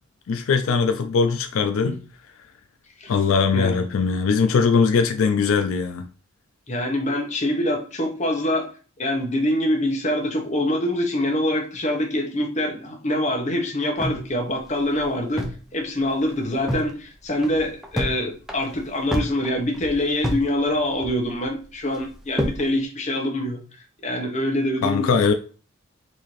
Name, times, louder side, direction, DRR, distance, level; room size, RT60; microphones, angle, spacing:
voice 1, 0.3-2.0 3.1-6.1 24.8-25.3, left 5 dB, 85° left, 0.4 m, -20 dB
voice 2, 3.5-3.8 4.5-4.6 6.7-8.7 9.0-15.4 15.7-23.6 24.0-25.2, left 1 dB, 35° left, 0.9 m, -25 dB
sound 1, 14.0-15.7 16.0-16.1 16.4-16.9 17.3-18.2 18.5-20.5 20.8-21.4 21.9-22.7, equal, ahead, 0.5 m, -28 dB
4.1 x 2.7 x 3.1 m
head